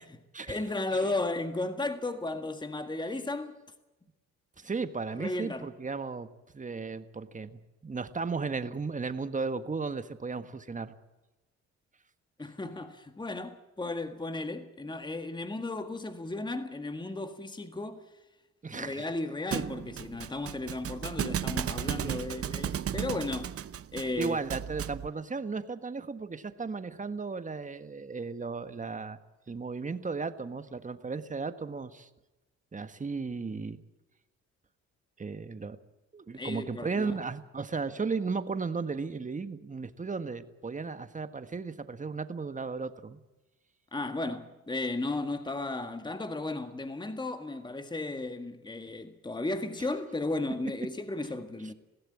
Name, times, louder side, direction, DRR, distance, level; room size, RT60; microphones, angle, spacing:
voice 1, 0.5-3.5 5.2-5.7 12.4-18.0 18.7-23.5 23.9-24.4 36.3-37.2 43.9-51.7, left 2 dB, 15° left, 1.7 m, -35 dB
voice 2, 4.6-6.3 6.5-10.9 18.6-19.1 21.9-22.2 24.2-29.2 29.5-32.1 32.7-33.8 35.2-35.8 36.1-43.2, right 4 dB, 25° right, 1.6 m, -35 dB
Thump thud, 19.5-25.1, right 9 dB, 50° right, 0.9 m, -35 dB
21.5 x 16.0 x 8.7 m
cardioid pair, 90°, 30 cm